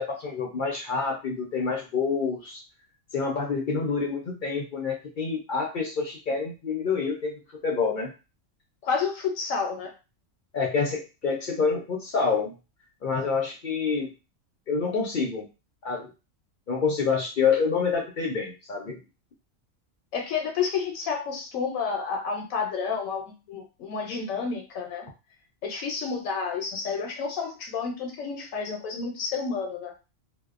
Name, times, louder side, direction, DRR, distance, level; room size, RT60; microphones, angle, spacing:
voice 1, 0.0-2.6 3.1-7.3 7.6-8.1 10.5-12.5 13.0-14.1 14.7-15.5 15.8-16.1 16.7-19.0, left 5 dB, 60° left, 0 dB, 0.5 m, -27 dB
voice 2, 8.8-9.9 20.1-25.1 25.6-29.9, left 5 dB, 80° left, 3 dB, 1.0 m, -30 dB
2.7 x 2.0 x 2.4 m, 0.29 s
omnidirectional pair, 1.4 m